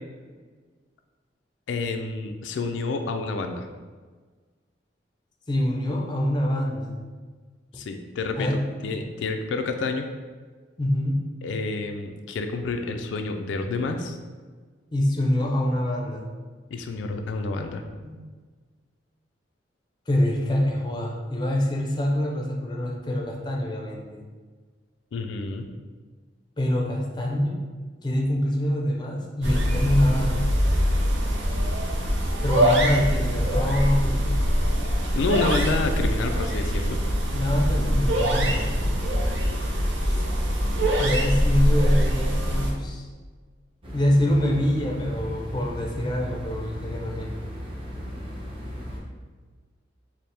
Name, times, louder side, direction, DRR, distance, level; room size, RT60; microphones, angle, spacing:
voice 1, 1.7-3.7 7.7-10.1 11.4-14.2 16.7-17.8 25.1-25.7 35.1-37.0, left 3 dB, 90° left, 5 dB, 0.3 m, -29 dB
voice 2, 5.5-7.0 8.4-8.6 10.8-11.3 14.9-16.3 18.0-18.2 20.1-24.2 26.6-27.6 28.0-30.5 32.4-34.3 37.3-38.7 40.1-40.2 41.0-43.1 43.9-47.3, left 1 dB, 25° left, 0 dB, 0.4 m, -25 dB
sound 1, 29.4-42.7, equal, 80° right, 0.6 m, -23 dB
sound 2, 43.8-49.0, equal, 30° right, 0.7 m, -36 dB
4.3 x 2.0 x 3.3 m, 1.5 s
head